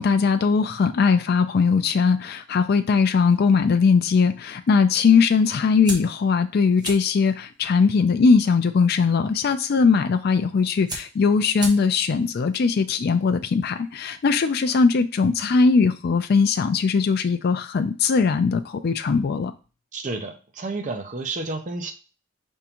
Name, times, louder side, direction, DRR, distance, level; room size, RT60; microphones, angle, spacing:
voice 1, 0.0-19.5, left 5 dB, 50° left, 8 dB, 0.3 m, -20 dB
sound 1, 5.8-14.3, right 2 dB, 20° right, 1.1 m, -41 dB
voice 2, 19.9-21.9, right 3 dB, 40° right, 4 dB, 0.6 m, -31 dB
5.1 x 3.6 x 2.9 m, 0.34 s
head